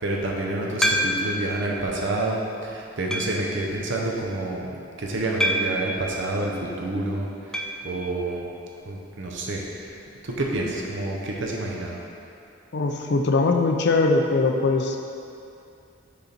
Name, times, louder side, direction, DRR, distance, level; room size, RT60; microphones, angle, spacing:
voice 1, 0.0-4.7 5.0-7.3 7.8-8.5 8.8-9.9 10.2-12.0, right 2 dB, 70° right, -1 dB, 0.9 m, -28 dB
sound 1, 0.8-1.5 2.1-2.2 3.1-3.5 5.4-5.9 7.5-7.8 8.1-8.2 8.4-8.5 10.6-10.7, equal, 5° left, 0.3 m, -25 dB
voice 2, 12.7-15.0, left 3 dB, 60° left, 4 dB, 0.5 m, -21 dB
6.5 x 4.0 x 4.4 m, 2.6 s
head